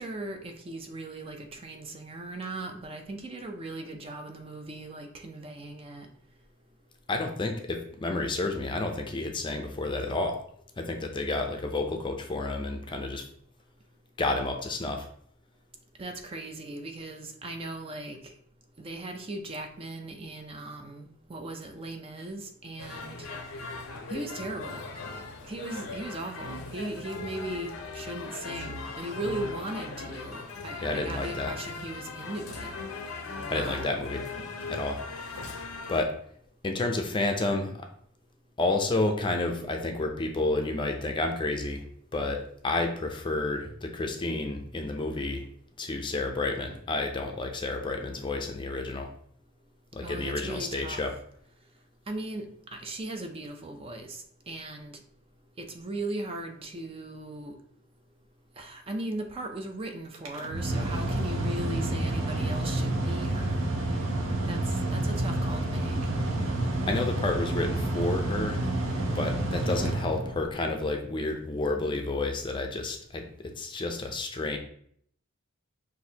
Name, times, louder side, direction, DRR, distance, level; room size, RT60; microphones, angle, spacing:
voice 1, 0.0-6.1 16.0-18.2 18.8-23.3 24.1-24.8 25.5-32.7 33.5-34.0 50.0-51.0 52.1-52.5 52.7-55.0 55.6-57.6 58.6-63.7 64.5-66.0, right 2 dB, 30° right, 5 dB, 0.5 m, -38 dB
voice 2, 7.1-10.4 10.8-13.3 14.2-15.1 30.8-31.5 33.5-34.2 34.7-35.5 35.9-36.1 36.6-37.9 38.6-41.8 42.1-45.5 45.8-49.1 49.9-51.1 66.9-68.7 69.1-74.6, left 2 dB, 25° left, 4 dB, 0.5 m, -30 dB
sound 1, 22.8-36.0, left 3 dB, 90° left, 0.7 m, -39 dB
Mechanical fan, 60.1-70.7, right 1 dB, 75° right, 0.8 m, -29 dB
6.1 x 2.6 x 2.8 m, 0.63 s
head